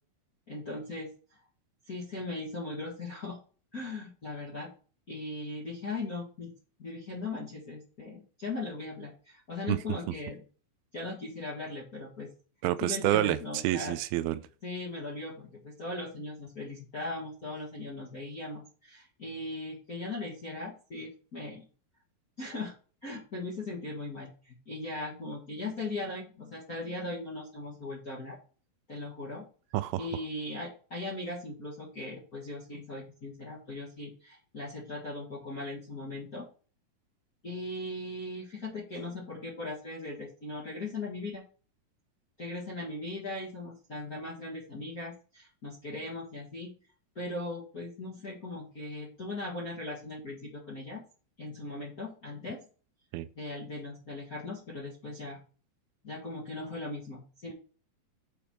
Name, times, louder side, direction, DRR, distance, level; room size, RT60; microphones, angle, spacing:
voice 1, 0.5-1.4 1.9-3.4 3.7-4.7 5.1-6.5 6.8-10.4 10.9-12.3 12.8-14.0 14.6-21.7 22.4-22.7 23.0-28.4 28.9-29.4 30.0-36.4 37.4-41.4 42.4-46.7 47.1-51.0 51.4-52.6 53.3-55.4 56.0-57.5, left 2 dB, 45° left, 1.1 m, -39 dB
voice 2, 12.6-14.5 29.7-30.1 53.1-53.3, right 15 dB, 85° right, 2.4 m, -29 dB
6.9 x 3.4 x 5.7 m
omnidirectional pair, 4.4 m